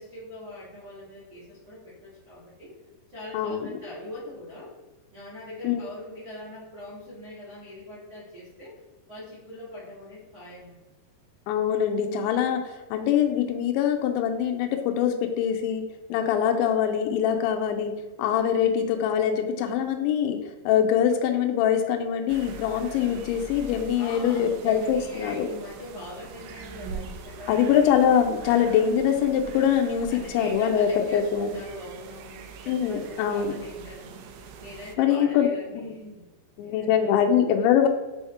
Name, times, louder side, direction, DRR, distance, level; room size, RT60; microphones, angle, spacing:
voice 1, 0.0-2.7 3.1-4.7 5.1-8.8 9.1-10.9 23.9-27.8 28.4-28.8 30.1-36.3 36.6-37.3, left 1 dB, 60° right, -11 dB, 1.0 m, -41 dB
voice 2, 3.3-3.7 5.6-5.8 11.5-15.8 16.1-17.9 18.2-20.4 20.7-25.5 27.5-31.5 32.7-33.5 35.0-35.5 35.7-35.9 36.6-37.9, left 9 dB, 85° left, 4 dB, 2.9 m, -23 dB
sound 1, 22.3-35.0, right 4 dB, 85° right, 2.9 m, -43 dB
7.0 x 3.5 x 4.2 m, 1.2 s
omnidirectional pair, 5.2 m